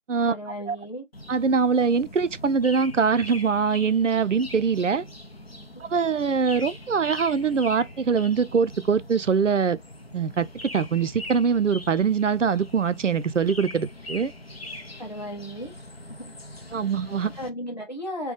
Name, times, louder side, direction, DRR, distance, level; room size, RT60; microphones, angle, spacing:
voice 1, 0.3-1.1 5.7-5.8 15.0-15.7 16.1-16.3 17.4-18.3, equal, 35° left, 1.3 m, -35 dB
sound 1, 1.1-17.5, left 1 dB, 55° left, 0.8 m, -42 dB
voice 2, 1.3-5.0 5.9-9.8 10.1-10.5 10.7-14.3 16.7-17.3, right 5 dB, 85° right, 0.6 m, -23 dB
4.3 x 2.3 x 3.4 m
figure-of-eight pair, 180°, 36 cm